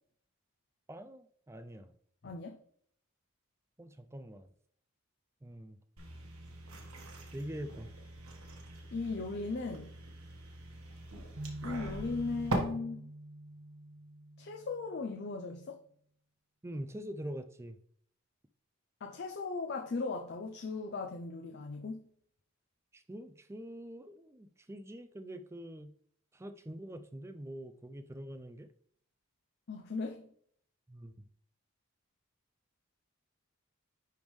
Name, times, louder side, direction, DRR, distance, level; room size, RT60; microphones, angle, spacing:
voice 1, 0.9-1.9 3.8-4.5 5.4-5.8 7.3-7.9 16.6-17.8 22.9-25.9 26.3-28.7 30.9-31.3, right 1 dB, 10° right, 0.4 m, -44 dB
voice 2, 2.2-2.6 8.9-9.9 11.6-13.1 14.4-15.8 19.0-22.0 29.7-30.3, left 3 dB, 50° left, 0.5 m, -37 dB
drinking beer bipdrinkin, 6.0-12.6, right 2 dB, 85° right, 1.4 m, -43 dB
sound 1, 11.4-15.4, right 1 dB, 45° right, 0.8 m, -46 dB
10.5 x 3.5 x 3.2 m
head